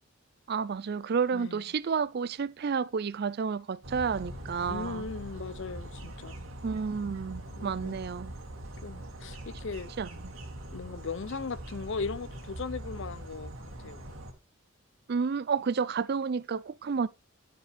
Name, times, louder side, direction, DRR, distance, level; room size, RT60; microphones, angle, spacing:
voice 1, 0.5-5.1 6.6-8.3 10.0-10.3 15.1-17.1, right 5 dB, 50° right, 0.4 m, -31 dB
voice 2, 1.3-1.6 4.7-6.4 7.6-8.0 8.8-9.9 10.7-14.0, left 4 dB, 55° left, 0.5 m, -38 dB
sound 1, 3.8-14.3, right 1 dB, 65° right, 2.0 m, -42 dB
9.9 x 6.8 x 3.4 m
head